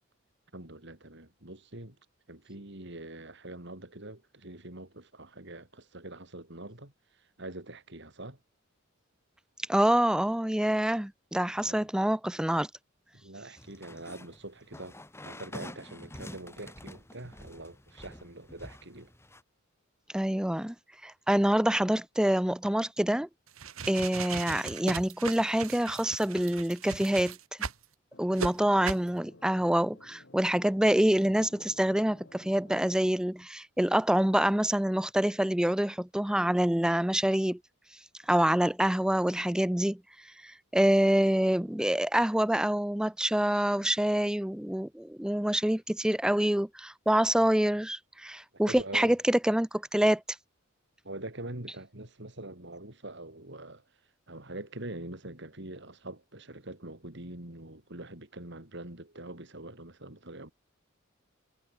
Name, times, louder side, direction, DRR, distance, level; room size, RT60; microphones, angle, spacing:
voice 1, 0.5-2.0 2.3-8.4 11.6-11.9 13.1-19.1 48.7-49.2 51.0-53.8 54.3-60.5, right 1 dB, 55° right, 3.8 m, -44 dB
voice 2, 9.7-12.7 20.1-20.7 21.0-23.3 23.9-27.4 28.2-37.6 38.3-40.0 40.4-50.2, right 1 dB, 5° right, 0.4 m, -26 dB
sound 1, 13.6-19.4, left 1 dB, 10° left, 5.0 m, -47 dB
sound 2, 23.5-27.8 28.4-28.5 28.8-29.1, right 5 dB, 90° right, 2.1 m, -37 dB
sound 3, 28.1-33.1, left 2 dB, 60° left, 2.6 m, -56 dB
head